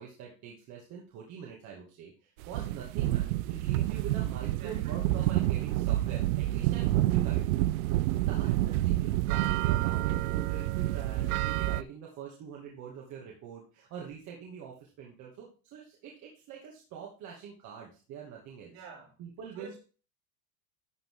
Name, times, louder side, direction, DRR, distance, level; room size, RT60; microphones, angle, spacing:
voice 1, 0.0-18.7 19.2-19.8, right 7 dB, 45° right, 2.6 m, -44 dB
sound 1, 2.4-11.8, right 15 dB, 85° right, 0.6 m, -28 dB
voice 2, 4.4-4.9 8.3-8.6 18.7-19.2 19.5-19.8, right 4 dB, 60° right, 4.8 m, -49 dB
12.0 x 5.9 x 3.9 m
supercardioid pair, 145°, 42 cm